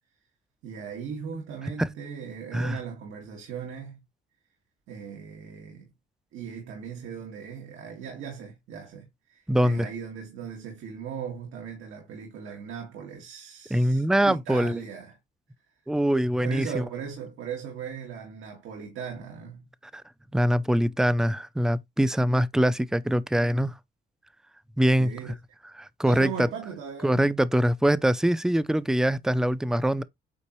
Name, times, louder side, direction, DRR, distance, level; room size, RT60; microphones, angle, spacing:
voice 1, 0.6-4.0 4.9-5.9 6.3-15.2 16.4-19.7 25.0-25.3 26.1-27.3, right 7 dB, 85° right, 2.1 m, -38 dB
voice 2, 9.5-9.8 13.7-14.8 15.9-16.8 19.9-20.0 20.3-23.7 24.8-25.1 25.8-26.5 27.0-30.0, right 1 dB, 5° right, 0.5 m, -23 dB
8.6 x 4.0 x 3.1 m
cardioid pair, 90°, 20 cm